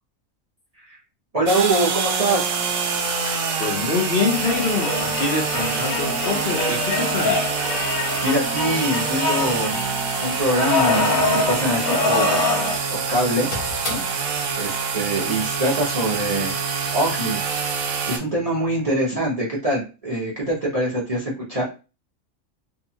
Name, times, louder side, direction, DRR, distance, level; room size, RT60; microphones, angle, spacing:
voice 1, 1.3-2.5 8.2-9.8 10.2-12.4 12.9-13.5 13.9-16.5 16.9-17.5 18.1-21.6, right 1 dB, 35° right, -6 dB, 0.7 m, -24 dB
sound 1, 1.5-18.2, right 5 dB, 70° right, 0.9 m, -26 dB
voice 2, 3.1-7.4 14.9-15.0, left 4 dB, 55° left, -1 dB, 0.7 m, -25 dB
Content warning, 4.3-12.8 13.1-13.2 13.4-14.2 15.2-15.3, left 3 dB, 75° left, 1.3 m, -25 dB
2.7 x 2.3 x 2.7 m, 0.31 s
omnidirectional pair, 1.4 m